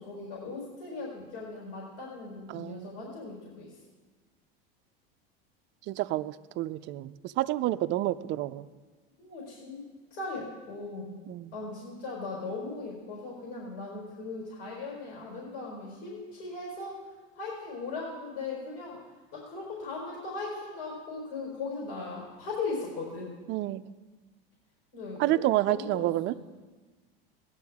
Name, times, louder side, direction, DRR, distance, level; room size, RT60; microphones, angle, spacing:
voice 1, 0.0-3.7 9.2-9.8 10.1-11.2 11.5-17.1 17.3-19.0 19.3-23.4 24.9-26.4, left 3 dB, 70° left, -3 dB, 4.7 m, -38 dB
voice 2, 2.5-2.9 5.9-8.7 11.3-11.6 23.5-23.8 25.2-26.3, right 16 dB, 40° right, 12 dB, 0.4 m, -29 dB
16.5 x 11.0 x 3.6 m, 1.3 s
supercardioid pair, 110°, 29 cm